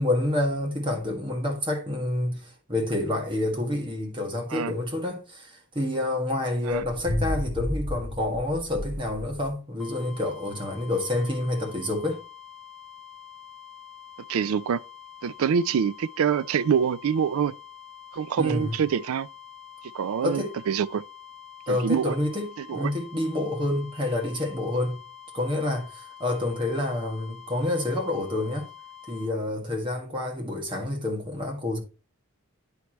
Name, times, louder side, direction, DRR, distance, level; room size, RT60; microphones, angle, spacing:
voice 1, 0.0-12.2 18.4-18.8 20.2-20.5 21.7-25.0 25.3-28.7 29.1-31.8, left 1 dB, 25° right, 1.8 m, -28 dB
sound 1, 6.7-9.5, equal, 45° left, 1.7 m, -32 dB
sound 2, 9.8-29.3, left 9 dB, ahead, 1.4 m, -46 dB
voice 2, 14.3-14.8 15.2-17.5 18.1-19.3 19.9-21.0 21.7-22.2 22.7-22.9, right 7 dB, 80° right, 0.4 m, -25 dB
9.7 x 4.7 x 3.0 m
head